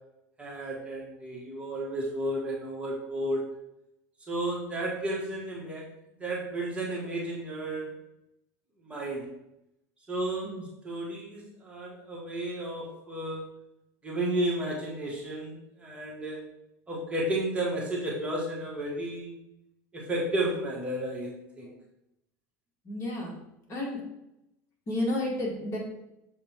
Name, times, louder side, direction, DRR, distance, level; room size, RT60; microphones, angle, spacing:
voice 1, 0.4-3.4 4.3-5.8 6.2-7.9 8.8-9.2 10.1-10.5 10.8-13.4 14.0-16.4 16.9-19.3 19.9-21.7, right 1 dB, 15° right, -4 dB, 1.4 m, -32 dB
voice 2, 22.8-23.3 23.7-24.0 24.9-25.8, left 1 dB, 35° left, -2 dB, 2.0 m, -31 dB
6.8 x 3.5 x 4.5 m, 0.87 s
supercardioid pair, 135°, 9 cm